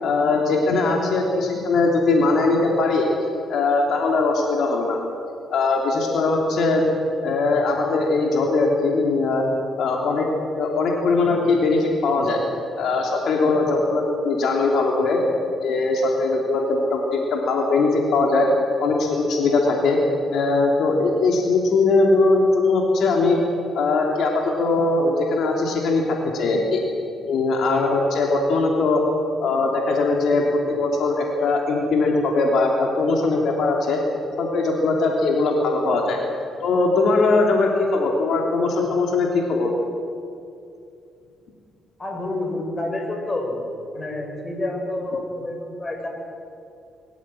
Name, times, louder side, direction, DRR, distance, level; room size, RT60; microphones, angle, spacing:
voice 1, 0.0-3.1 3.5-5.0 5.5-6.8 7.2-9.4 9.8-10.3 10.6-12.4 12.8-15.2 15.6-18.5 18.8-20.0 20.3-23.4 23.7-26.8 27.3-29.0 29.4-30.4 30.7-34.0 34.4-36.2 36.6-39.7, left 3 dB, 70° left, 1 dB, 3.2 m, -20 dB
voice 2, 42.0-43.6 43.9-46.1, left 2 dB, 25° left, 2 dB, 5.7 m, -28 dB
25.0 x 14.5 x 9.1 m, 2.5 s
cardioid pair, 90°, 0 cm